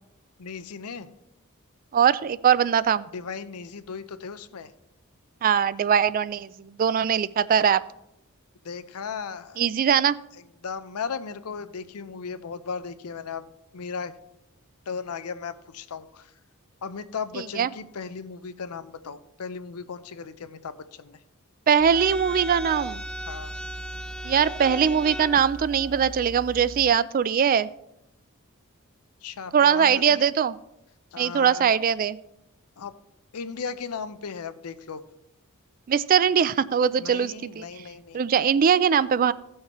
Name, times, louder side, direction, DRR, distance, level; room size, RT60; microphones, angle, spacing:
voice 1, 0.4-1.1 3.1-4.7 8.6-9.6 10.6-13.5 13.7-14.1 14.9-16.3 16.8-21.2 23.3-23.5 29.2-30.3 31.1-31.7 32.8-32.9 33.3-35.0 37.0-38.2, left 5 dB, 80° left, 12 dB, 0.6 m, -36 dB
voice 2, 1.9-3.1 5.4-7.8 9.6-10.2 17.3-17.7 21.7-23.0 24.2-27.7 29.5-30.6 31.2-32.2 35.9-37.6 38.1-39.3, right 7 dB, 40° right, 17 dB, 0.3 m, -21 dB
sound 1, 21.8-26.8, right 1 dB, 5° left, 0.7 m, -36 dB
16.5 x 6.4 x 3.0 m, 0.84 s
head